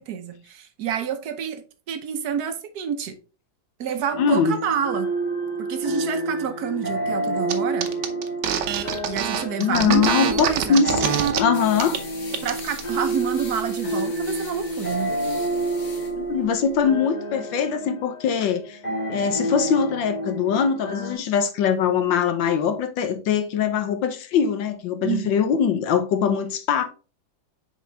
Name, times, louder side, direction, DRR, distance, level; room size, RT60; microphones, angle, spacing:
voice 1, 0.0-3.2 3.8-5.1 5.6-7.9 9.1-10.9 12.4-15.1 25.0-25.4, right 8 dB, 65° right, 1.1 m, -28 dB
sound 1, 4.1-21.2, right 1 dB, 25° left, 1.3 m, -29 dB
voice 2, 4.2-4.6 9.6-10.9 11.4-12.0 16.2-18.8 19.1-26.8, left 7 dB, 75° left, 1.5 m, -22 dB
sound 2, 7.5-7.6 7.8-11.4 11.8-12.0 12.3-12.8, right 8 dB, 80° right, 1.6 m, -25 dB
sound 3, 11.5-16.9, left 4 dB, 45° left, 1.4 m, -42 dB
6.7 x 4.3 x 3.3 m
omnidirectional pair, 2.2 m